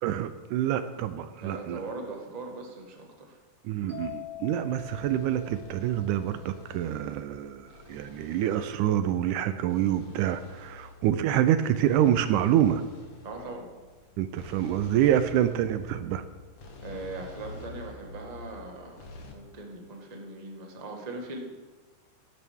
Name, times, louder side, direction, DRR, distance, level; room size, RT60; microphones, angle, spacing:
voice 1, 0.0-1.8 3.6-12.8 14.2-16.3, right 11 dB, 80° right, 11 dB, 1.9 m, -26 dB
voice 2, 1.3-3.4 13.2-13.7 16.8-21.4, right 2 dB, 55° right, 1 dB, 0.4 m, -40 dB
sound 1, 3.9-7.5, left 12 dB, 5° right, 3.7 m, -45 dB
sound 2, 4.8-19.3, left 3 dB, 60° left, 1.2 m, -48 dB
16.5 x 11.0 x 3.6 m, 1.3 s
omnidirectional pair, 3.9 m